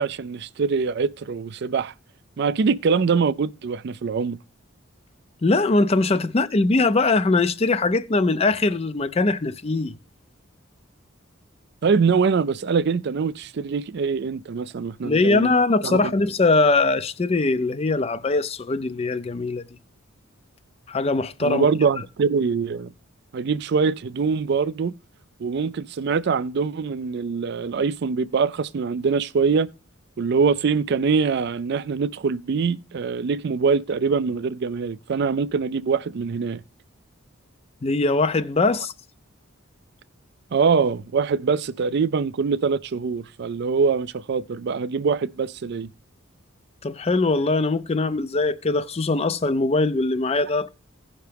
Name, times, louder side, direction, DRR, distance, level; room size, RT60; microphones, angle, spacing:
voice 1, 0.0-1.9 2.4-4.4 11.8-15.5 15.8-16.1 21.4-22.9 23.3-24.9 25.4-29.7 30.2-36.6 40.5-45.9, right 5 dB, 55° right, 0.4 m, -23 dB
voice 2, 5.4-10.0 15.0-19.6 20.9-21.7 37.8-38.9 46.8-50.7, left 3 dB, 30° left, 0.4 m, -21 dB
16.0 x 5.7 x 3.4 m
head